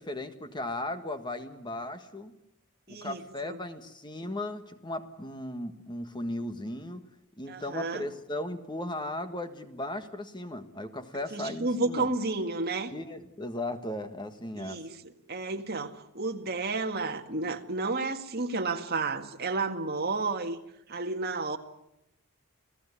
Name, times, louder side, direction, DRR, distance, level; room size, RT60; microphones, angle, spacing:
voice 1, 0.0-2.3 3.0-7.1 7.4-12.1 12.9-14.8, left 1 dB, 20° left, 1.5 m, -36 dB
voice 2, 2.9-3.6 7.5-8.0 11.3-12.9 14.5-14.9 15.3-20.6 20.9-21.6, right 3 dB, 45° right, 2.1 m, -31 dB
29.0 x 17.5 x 9.8 m
head